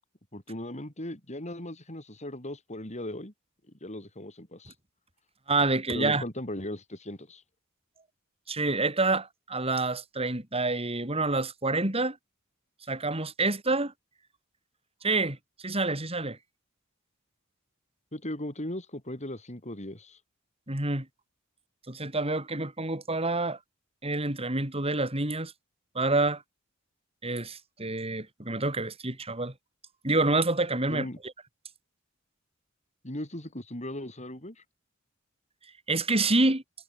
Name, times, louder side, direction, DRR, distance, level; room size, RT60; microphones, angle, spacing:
voice 1, 0.3-3.3 3.8-4.7 5.9-7.4 18.1-20.2 30.9-31.2 33.0-34.6, left 1 dB, 35° left, 6.3 m, -38 dB
voice 2, 5.5-6.2 8.5-12.2 12.9-13.9 15.0-16.4 20.7-21.1 21.9-23.6 24.0-25.5 25.9-26.4 27.2-29.5 30.0-31.3 35.9-36.6, right 2 dB, 30° right, 4.2 m, -27 dB
head